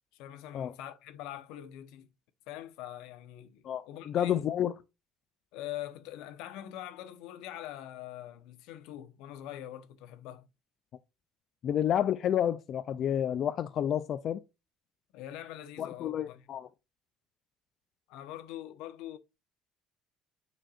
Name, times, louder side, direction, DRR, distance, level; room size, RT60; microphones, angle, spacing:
voice 1, 0.1-2.1 2.5-4.4 5.5-10.5 15.1-16.5 18.1-19.2, left 12 dB, 80° left, 0.9 m, -43 dB
voice 2, 3.6-4.7 11.6-14.4 15.8-16.7, left 10 dB, 40° left, 0.3 m, -30 dB
9.0 x 4.4 x 2.4 m
cardioid pair, 170°, 0 cm